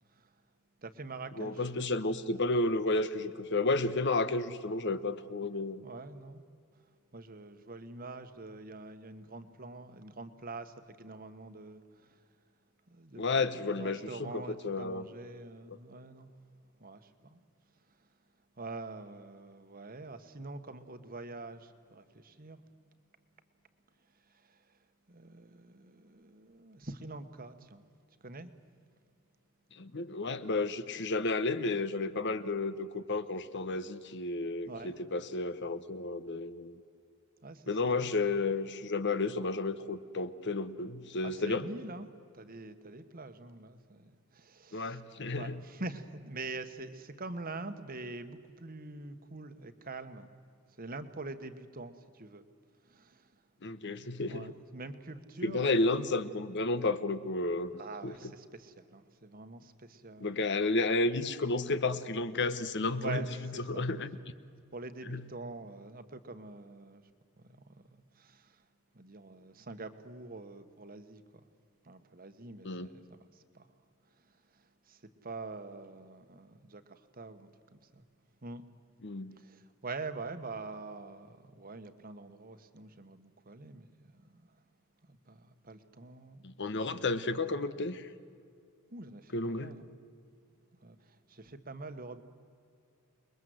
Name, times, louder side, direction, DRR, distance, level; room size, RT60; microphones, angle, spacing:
voice 1, 0.8-1.7 5.8-6.4 7.1-12.2 12.9-13.2 13.5-16.3 16.8-17.4 17.9-18.1 18.6-22.6 24.3-24.8 25.1-27.8 28.2-28.5 34.7-34.9 37.4-38.1 41.2-42.1 42.3-45.0 45.4-50.3 50.7-52.4 52.8-53.4 54.2-55.8 57.8-60.4 63.0-63.9 64.7-67.0 67.4-68.7 68.9-71.5 71.8-73.7 74.1-78.0 78.4-78.6 79.3-84.6 85.1-86.4 86.8-86.9 88.9-89.9 90.8-92.2, right 3 dB, 40° right, 10 dB, 1.3 m, -45 dB
voice 2, 1.4-5.8 13.2-15.0 15.7-15.8 29.7-36.8 37.7-41.6 44.7-45.6 53.6-54.5 55.4-57.7 58.0-58.1 60.2-63.2 63.7-64.1 65.1-65.2 72.6-72.9 79.0-79.3 86.4-88.1 89.3-89.7, left 3 dB, 55° left, 13 dB, 1.1 m, -32 dB
28.5 x 21.5 x 7.9 m, 2.4 s
head